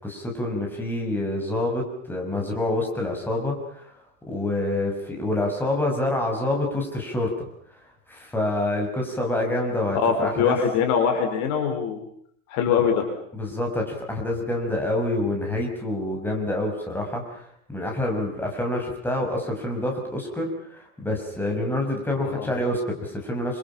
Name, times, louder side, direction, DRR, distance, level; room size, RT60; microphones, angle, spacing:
voice 1, 0.0-3.9 4.3-7.5 8.1-10.6 12.8-12.9 13.3-23.6, left 1 dB, 5° left, 0 dB, 6.2 m, -27 dB
voice 2, 9.9-12.0 12.5-13.0 22.2-22.5, left 7 dB, 40° left, 5 dB, 5.0 m, -23 dB
29.5 x 27.0 x 5.7 m, 0.67 s
supercardioid pair, 155°, 42 cm